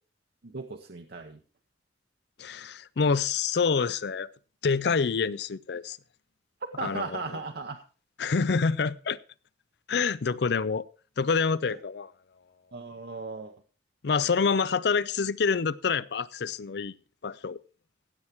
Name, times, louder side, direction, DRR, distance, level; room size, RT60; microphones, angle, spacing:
voice 1, 0.4-1.4 6.8-7.8 11.7-11.8 12.7-13.5, right 4 dB, 60° right, 0.9 m, -37 dB
voice 2, 2.4-4.3 4.6-6.0 6.8-7.2 8.2-9.2 9.9-10.9 11.2-12.1 14.0-16.9 17.2-17.6, left 5 dB, 65° left, 0.5 m, -27 dB
16.0 x 7.3 x 4.5 m
head